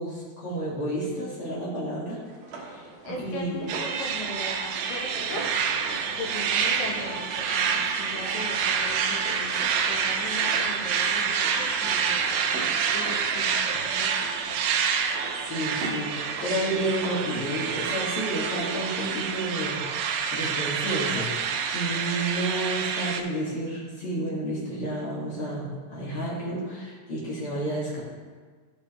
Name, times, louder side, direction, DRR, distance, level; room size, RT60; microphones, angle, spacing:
voice 1, 0.0-2.2 2.6-2.9 3.2-3.7 15.3-28.0, right 1 dB, 45° left, -7 dB, 2.6 m, -31 dB
sound 1, 2.2-17.8, right 3 dB, 70° right, 3.0 m, -43 dB
voice 2, 3.0-5.5 6.1-14.6, left 2 dB, 75° left, -2 dB, 3.0 m, -39 dB
sound 2, 3.7-23.2, right 6 dB, 85° right, 1.7 m, -27 dB
sound 3, 5.2-13.9, right 1 dB, 45° right, 1.8 m, -47 dB
16.0 x 5.7 x 3.0 m, 1.5 s
omnidirectional pair, 4.1 m